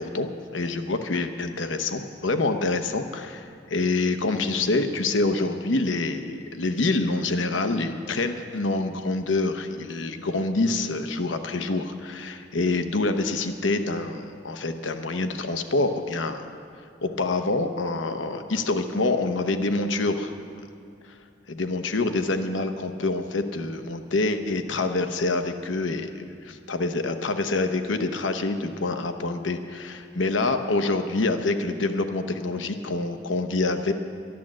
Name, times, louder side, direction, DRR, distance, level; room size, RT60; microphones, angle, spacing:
voice 1, 0.0-16.4 17.0-20.3 21.5-33.9, left 2 dB, 85° left, 7 dB, 0.9 m, -26 dB
12.0 x 11.0 x 7.5 m, 2.3 s
head